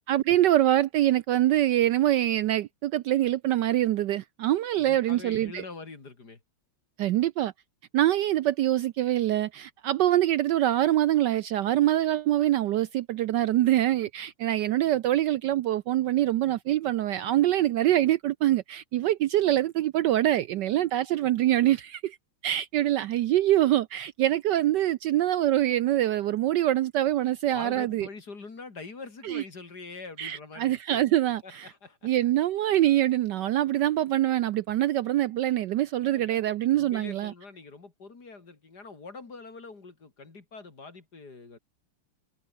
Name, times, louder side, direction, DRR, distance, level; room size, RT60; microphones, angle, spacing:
voice 1, 0.1-5.6 7.0-7.5 7.9-22.2 22.4-28.1 29.2-29.4 30.2-31.7 32.0-37.3, right 13 dB, 75° right, 1.0 m, -24 dB
voice 2, 4.7-6.4 27.5-31.0 31.3-32.1 36.0-41.6, left 4 dB, 45° left, 3.6 m, -44 dB
omnidirectional pair, 2.4 m